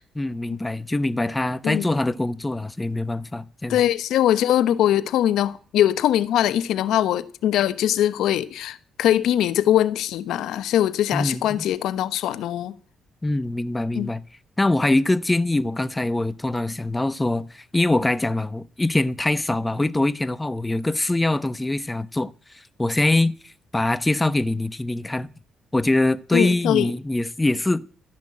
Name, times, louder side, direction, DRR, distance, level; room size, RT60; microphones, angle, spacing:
voice 1, 0.2-3.8 11.1-11.6 13.2-14.2 14.6-25.3 25.7-27.8, left 2 dB, 15° left, 0.9 m, -23 dB
voice 2, 3.7-12.7 13.9-14.1 26.3-26.9, left 11 dB, 85° left, 1.0 m, -22 dB
13.0 x 10.5 x 8.6 m
cardioid pair, 90°, 0 cm